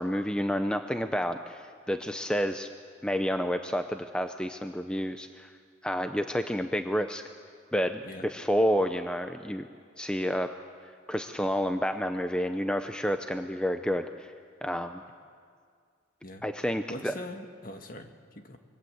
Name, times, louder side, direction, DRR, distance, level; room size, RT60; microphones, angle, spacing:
voice 1, 0.0-2.7 3.0-5.5 5.8-7.2 7.7-9.7 10.0-10.5 11.1-14.3 14.6-15.0 16.4-17.1, equal, 5° left, 7 dB, 0.6 m, -29 dB
voice 2, 16.9-18.6, left 1 dB, 45° left, 6 dB, 1.7 m, -42 dB
26.5 x 22.5 x 7.9 m, 2.1 s
head